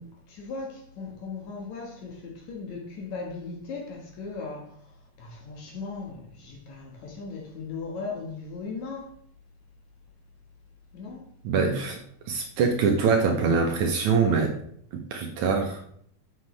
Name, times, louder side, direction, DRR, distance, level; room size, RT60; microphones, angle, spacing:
voice 1, 0.0-4.9 5.2-9.1 10.9-11.3, left 4 dB, 60° left, 2.5 m, -38 dB
voice 2, 11.4-12.0 12.3-14.5 14.9-15.8, right 5 dB, 70° right, 2.0 m, -24 dB
8.0 x 7.3 x 3.2 m
omnidirectional pair, 4.0 m